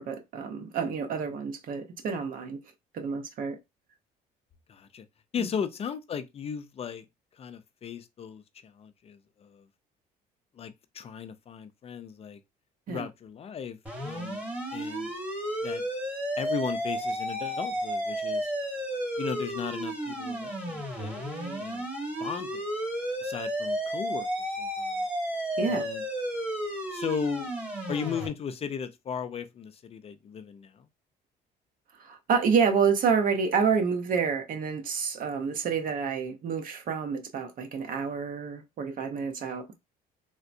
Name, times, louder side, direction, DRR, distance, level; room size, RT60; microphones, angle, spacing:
voice 1, 0.0-2.6 2.9-3.6 5.4-5.5 12.9-13.1 21.2-21.6 25.6-25.9 32.0-39.7, right 6 dB, 55° right, 0.7 m, -28 dB
voice 2, 4.7-5.0 5.3-7.0 7.3-9.7 10.6-12.4 12.9-13.8 14.0-14.5 14.7-15.1 15.6-15.8 16.4-18.5 19.2-21.2 21.6-21.9 22.2-22.7 23.2-24.3 24.6-25.1 25.7-26.0 26.9-27.5 27.9-30.9, left 7 dB, 35° left, 0.4 m, -36 dB
sound 1, 13.9-28.3, right 1 dB, 10° right, 1.3 m, -32 dB
3.5 x 2.1 x 2.5 m
cardioid pair, 110°, 17 cm